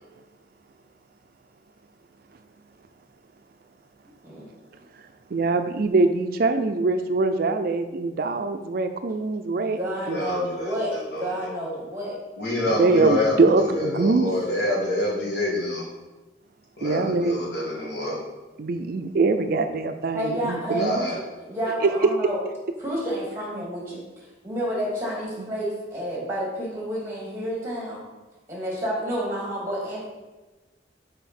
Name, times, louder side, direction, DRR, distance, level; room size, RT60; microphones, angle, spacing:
voice 1, 4.1-4.5 9.6-12.2 20.1-22.4 22.8-28.0 28.5-30.1, equal, 15° right, -4 dB, 2.2 m, -30 dB
voice 2, 5.3-9.8 10.1-10.2 12.7-14.3 16.8-17.4 18.6-21.0 21.8-21.9 25.4-25.5, right 3 dB, 55° right, 8 dB, 0.4 m, -23 dB
voice 3, 10.1-10.7 11.1-11.2 12.4-13.3 13.6-15.8 16.8-18.2 20.8-21.2, left 1 dB, 65° left, -4 dB, 2.0 m, -26 dB
5.9 x 5.3 x 4.2 m, 1.2 s
head